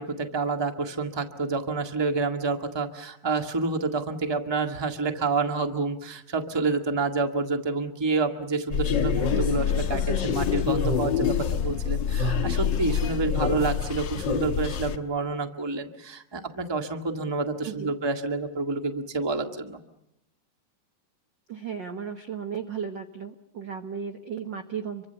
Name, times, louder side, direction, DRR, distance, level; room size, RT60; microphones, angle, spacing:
voice 1, 0.0-19.8, right 3 dB, 15° right, 5 dB, 0.9 m, -28 dB
sound 1, 8.7-15.0, left 7 dB, 60° left, 1.2 m, -26 dB
voice 2, 21.5-25.0, right 7 dB, 70° right, 7 dB, 1.0 m, -35 dB
28.0 x 24.5 x 6.9 m, 0.80 s
omnidirectional pair, 3.8 m